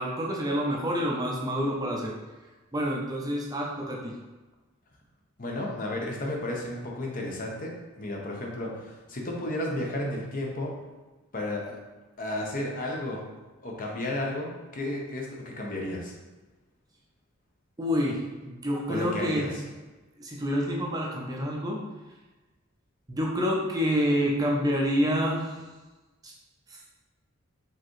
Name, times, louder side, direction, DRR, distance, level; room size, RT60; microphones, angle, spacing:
voice 1, 0.0-2.1 2.7-4.2 17.8-19.5 20.2-21.8 23.1-25.5 26.2-26.3 26.7-26.8, equal, 15° right, -2 dB, 0.6 m, -28 dB
voice 2, 5.4-10.7 11.3-11.8 12.2-13.2 13.6-16.1 18.9-19.6, left 1 dB, 40° left, -1 dB, 0.8 m, -33 dB
4.6 x 3.6 x 3.1 m, 1.2 s
head